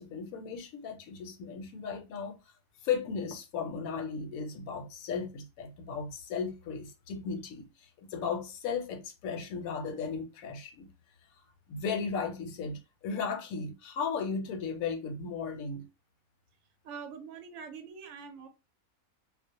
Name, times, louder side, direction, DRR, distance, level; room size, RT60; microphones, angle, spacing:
voice 1, 0.0-2.4 2.8-10.9 11.7-15.9, left 5 dB, 75° left, 1.0 m, -36 dB
voice 2, 16.8-18.5, right 6 dB, 70° right, 0.9 m, -44 dB
2.4 x 2.0 x 2.6 m
omnidirectional pair, 1.5 m